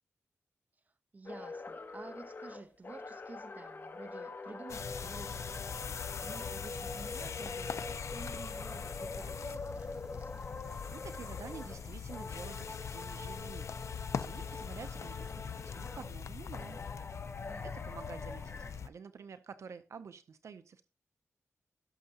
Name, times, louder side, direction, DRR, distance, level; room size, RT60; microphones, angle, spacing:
voice 1, 1.1-10.4 17.4-18.0, right 3 dB, 35° right, 0.9 m, -51 dB
sound 1, 1.3-11.8 12.1-16.1 16.5-18.7, left 3 dB, 50° left, 1.7 m, -45 dB
sound 2, 4.7-18.9, left 6 dB, 70° left, 0.6 m, -42 dB
Sawing, 6.6-16.9, right 1 dB, 15° right, 4.3 m, -69 dB
voice 2, 10.9-13.7 14.2-17.2 17.6-20.9, right 6 dB, 70° right, 0.6 m, -49 dB
17.0 x 6.6 x 2.8 m
wide cardioid pair, 90°, 5 cm